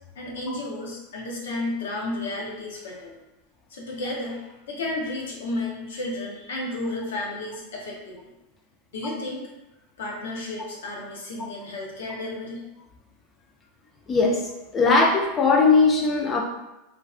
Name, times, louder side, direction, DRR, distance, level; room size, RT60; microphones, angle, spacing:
voice 1, 0.1-3.1 3.7-8.3 8.9-9.5 10.0-12.6, left 2 dB, 80° left, -2 dB, 0.7 m, -32 dB
voice 2, 14.1-16.4, left 4 dB, 25° left, 0 dB, 0.4 m, -20 dB
2.5 x 2.3 x 2.3 m, 0.99 s
hypercardioid pair, 100°, 0 cm